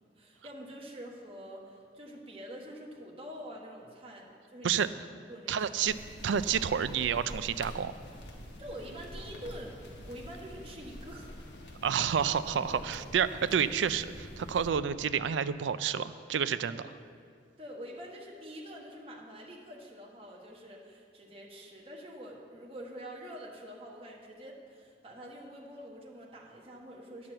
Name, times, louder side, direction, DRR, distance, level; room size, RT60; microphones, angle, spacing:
voice 1, 0.2-4.8 5.3-5.7 8.6-9.8 10.1-11.3 12.7-13.0 16.7-16.8 17.6-27.3, equal, 30° right, -2 dB, 1.3 m, -46 dB
voice 2, 5.5-5.9 6.2-7.9 11.8-16.8, right 7 dB, 85° right, 13 dB, 0.4 m, -29 dB
sound 1, 5.9-14.7, equal, 70° left, 1.3 m, -46 dB
9.8 x 6.0 x 7.7 m, 2.2 s
head